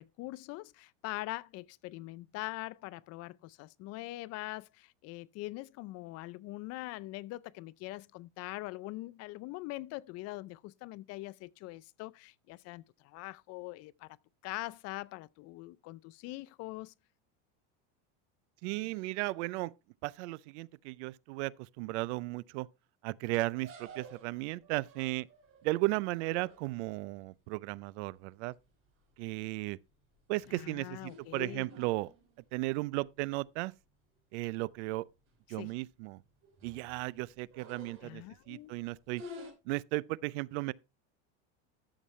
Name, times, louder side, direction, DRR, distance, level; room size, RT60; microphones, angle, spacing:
voice 1, 0.0-14.2 14.4-16.9 30.5-31.7 35.6-35.7 38.0-38.7, left 19 dB, 45° left, 0.5 m, -43 dB
voice 2, 18.6-19.7 20.0-22.7 23.0-25.3 25.6-28.5 29.2-29.8 30.3-32.1 32.5-33.7 34.3-35.1 35.5-36.2 36.6-39.2 39.7-40.7, right 21 dB, 75° right, 0.6 m, -35 dB
sound 1, 23.6-27.0 28.6-28.9 29.3-29.6 30.1-32.6 33.0-33.1 33.4-33.5 34.4-34.5 34.8-34.9 35.3-35.6 36.2-38.4 39.1-39.5, equal, 35° right, 4.6 m, -51 dB
12.5 x 7.3 x 3.2 m
supercardioid pair, 130°, 35 cm